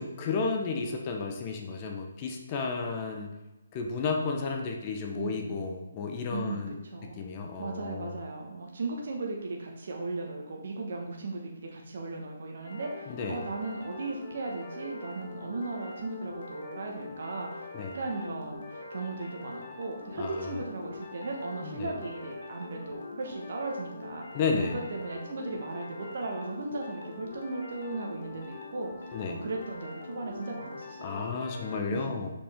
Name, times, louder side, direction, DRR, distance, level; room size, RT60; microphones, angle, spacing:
voice 1, 0.0-3.4 3.7-6.8 7.2-8.2 13.1-13.4 17.7-18.0 20.2-20.6 21.6-22.0 24.3-24.8 29.1-29.4 31.0-32.3, left 4 dB, 30° left, 3 dB, 0.8 m, -32 dB
voice 2, 5.1-5.6 6.3-7.3 7.6-17.6 17.9-24.3 24.7-28.9 29.3-31.2 31.9-32.1, right 3 dB, 55° right, 0 dB, 1.2 m, -37 dB
sound 1, 12.6-31.8, left 3 dB, 55° left, 1.4 m, -43 dB
6.6 x 5.2 x 3.6 m, 1.1 s
figure-of-eight pair, 140°, 0 cm